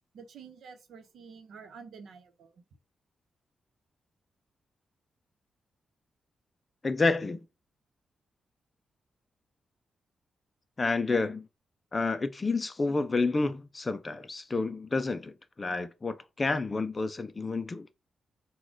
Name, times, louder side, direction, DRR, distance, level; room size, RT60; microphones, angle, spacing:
voice 1, 0.1-2.6, right 6 dB, 75° right, 0.8 m, -49 dB
voice 2, 6.8-7.5 10.8-11.5 11.9-17.9, left 3 dB, 20° left, 0.3 m, -29 dB
4.2 x 2.2 x 4.5 m
wide cardioid pair, 165°, 0 cm